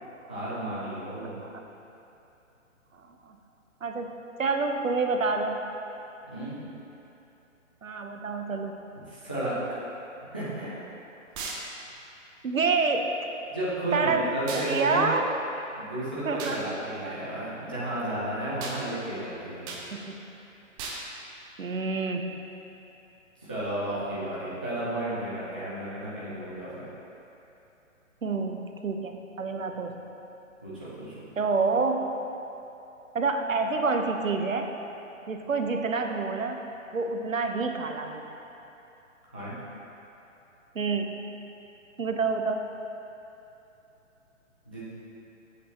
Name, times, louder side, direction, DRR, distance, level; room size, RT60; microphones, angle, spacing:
voice 1, 0.3-1.4 6.3-6.6 9.1-9.6 10.3-10.7 13.5-15.2 15.7-19.8 23.4-26.7 30.6-31.2 39.3-39.5 44.7-44.9, right 1 dB, 10° left, -10 dB, 0.3 m, -33 dB
voice 2, 3.8-4.1 4.4-5.6 7.8-8.8 12.4-13.1 13.9-15.4 16.2-16.6 17.0-17.2 19.9-20.1 21.6-22.4 28.2-30.0 31.4-32.1 33.1-34.7 35.3-36.6 36.9-38.2 40.7-41.2 42.0-42.6, right 4 dB, 75° right, 4 dB, 1.0 m, -28 dB
sound 1, 11.3-11.6 14.5-14.7 16.4-16.6 18.6-18.8 19.7-19.8 20.8-21.0, right 4 dB, 15° right, 0.7 m, -36 dB
14.5 x 7.9 x 2.9 m, 2.9 s
figure-of-eight pair, 130°, 39 cm